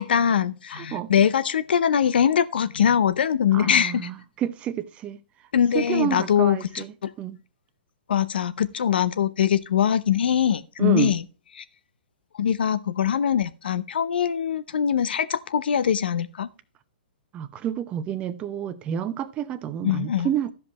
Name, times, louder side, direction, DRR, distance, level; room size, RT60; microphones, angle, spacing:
voice 1, 0.0-4.1 5.5-7.1 8.1-11.2 12.4-16.5 19.8-20.3, left 8 dB, 75° left, 0.8 m, -22 dB
voice 2, 0.7-1.1 3.5-5.2 5.7-6.9 7.2-7.4 10.8-11.1 17.3-20.5, right 10 dB, 20° right, 0.8 m, -29 dB
13.5 x 5.3 x 4.2 m
hypercardioid pair, 145°, 5 cm